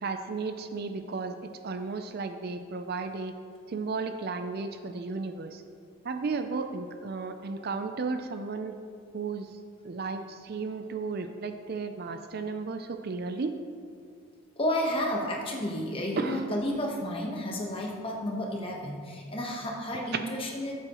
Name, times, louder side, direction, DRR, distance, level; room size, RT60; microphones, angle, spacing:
voice 1, 0.0-3.3 3.7-5.6 6.0-8.8 9.1-9.6 9.8-13.5 16.2-16.4, right 4 dB, 45° right, 7 dB, 0.4 m, -34 dB
voice 2, 14.6-20.7, left 1 dB, 25° left, -1 dB, 1.2 m, -31 dB
13.0 x 7.7 x 3.0 m, 2.2 s
head